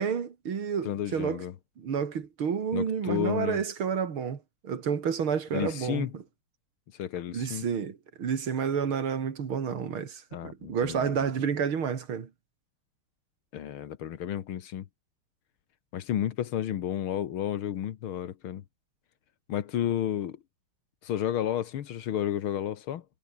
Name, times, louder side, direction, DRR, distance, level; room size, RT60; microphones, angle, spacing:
voice 1, 0.0-1.4 1.8-6.2 7.3-12.3, right 7 dB, 90° right, 3.1 m, -30 dB
voice 2, 0.8-1.5 2.7-3.6 5.5-6.1 7.0-7.7 10.3-11.2 13.5-14.9 15.9-18.6 19.5-20.4 21.0-23.0, left 10 dB, 85° left, 2.1 m, -32 dB
omnidirectional pair, 2.2 m